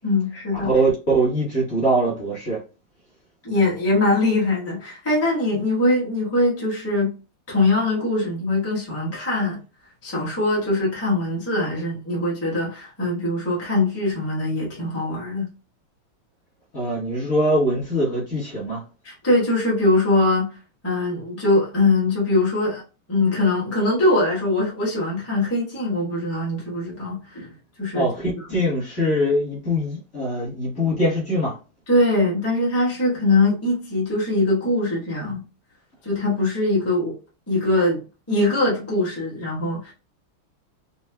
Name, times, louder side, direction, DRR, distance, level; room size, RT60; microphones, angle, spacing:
voice 1, 0.0-0.7 3.4-7.1 7.5-9.6 10.0-15.5 19.0-20.5 20.8-22.8 23.1-27.5 27.8-28.3 31.9-35.4 36.0-37.1 37.5-38.0 38.3-39.9, left 2 dB, 10° left, 0.7 m, -22 dB
voice 2, 0.6-2.6 16.7-18.8 27.9-31.6, right 1 dB, 40° left, 1.4 m, -22 dB
4.3 x 2.3 x 2.2 m
omnidirectional pair, 2.4 m